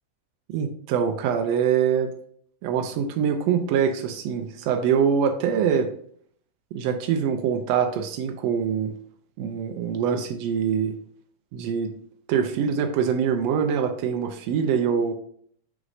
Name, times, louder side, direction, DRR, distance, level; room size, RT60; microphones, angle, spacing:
voice 1, 0.5-2.1 2.6-5.9 6.7-8.9 9.4-10.9 11.5-11.9 12.3-15.1, right 7 dB, 90° right, 5 dB, 1.4 m, -24 dB
6.3 x 6.1 x 2.6 m, 0.62 s
omnidirectional pair, 3.6 m